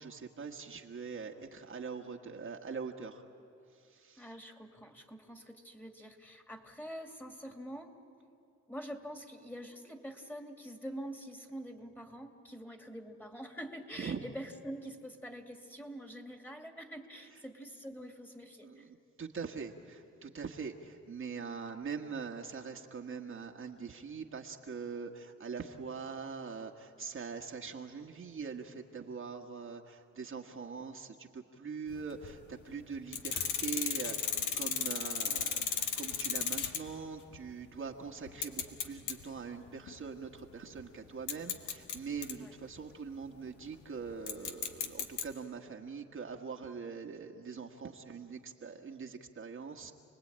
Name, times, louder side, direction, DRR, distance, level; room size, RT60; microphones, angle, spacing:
voice 1, 0.0-3.2 3.7-4.3 14.0-14.2 17.3-17.4 18.6-49.9, right 5 dB, 45° right, 2 dB, 1.5 m, -43 dB
voice 2, 4.2-8.0 8.7-18.9 42.4-42.5, equal, 5° left, 4 dB, 2.5 m, -45 dB
sound 1, 31.9-32.3 33.1-37.0 37.3-37.4 38.3-39.2 39.7-39.9 40.8-40.9 41.3-42.3 44.3-45.2, left 7 dB, 75° left, 1.8 m, -35 dB
29.0 x 20.0 x 8.8 m, 2.5 s
cardioid pair, 90°, 30 cm